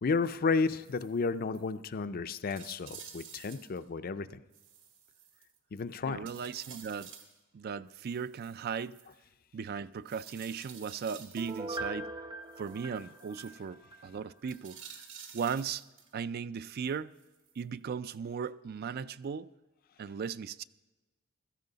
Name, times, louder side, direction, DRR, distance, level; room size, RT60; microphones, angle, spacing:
voice 1, 0.0-4.3 5.7-6.3, left 4 dB, 45° left, 0.5 m, -32 dB
sound 1, 0.5-1.2 1.5-1.7 2.0-2.1 2.5-3.8 4.5-5.8 6.2-7.4 7.9-9.1 10.1-11.8 12.5-13.6 14.4-16.1 16.6-17.6 18.1-18.2, right 7 dB, 60° right, 1.9 m, -52 dB
voice 2, 6.1-7.1 7.5-9.0 9.5-12.1 12.6-14.8 15.3-15.8 16.1-17.1 17.6-19.5 20.0-20.6, right 6 dB, 45° right, 0.3 m, -37 dB
Piano, 11.4-14.1 14.4-14.5, right 2 dB, 25° right, 0.7 m, -41 dB
16.0 x 14.0 x 3.9 m
head